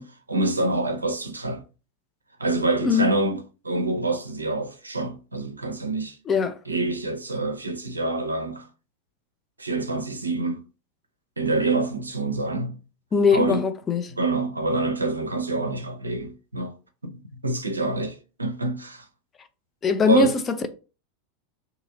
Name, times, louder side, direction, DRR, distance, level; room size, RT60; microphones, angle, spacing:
voice 1, 0.0-1.6 2.4-3.4 3.6-6.2 6.7-8.7 9.6-10.6 11.4-12.8 13.3-13.6 14.2-16.7 17.0-19.0 20.1-20.3, right 2 dB, 80° right, 0.5 m, -26 dB
voice 2, 2.8-3.1 6.3-6.6 13.1-14.1 19.8-20.7, left 5 dB, 25° left, 0.4 m, -21 dB
2.8 x 2.4 x 3.8 m
figure-of-eight pair, 85°, 0 cm